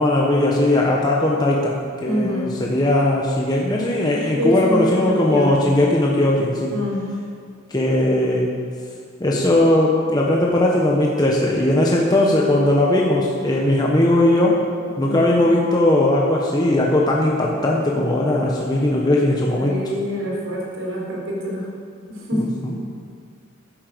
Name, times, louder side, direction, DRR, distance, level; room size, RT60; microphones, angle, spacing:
voice 1, 0.0-6.7 7.7-8.5 9.2-14.6 15.0-19.8 22.3-22.7, left 1 dB, 20° left, -3 dB, 1.1 m, -18 dB
voice 2, 2.0-2.6 4.4-5.7 6.6-7.1 15.0-15.3 19.6-21.7 22.1-22.6, left 1 dB, 75° right, -3 dB, 3.9 m, -25 dB
11.0 x 9.8 x 6.8 m, 2.2 s
head